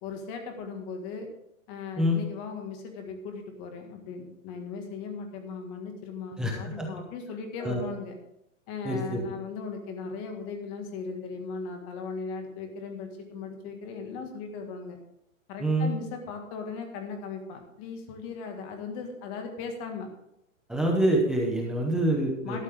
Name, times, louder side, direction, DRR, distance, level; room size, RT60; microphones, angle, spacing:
voice 1, 0.0-1.3 1.7-8.2 8.7-15.0 15.5-20.1 22.4-22.6, left 5 dB, 25° left, 4 dB, 1.8 m, -38 dB
voice 2, 6.4-6.9 7.6-7.8 8.8-9.2 15.6-15.9 20.7-22.6, right 1 dB, ahead, -1 dB, 0.7 m, -26 dB
12.5 x 12.0 x 3.6 m, 0.81 s
hypercardioid pair, 165°, 40 cm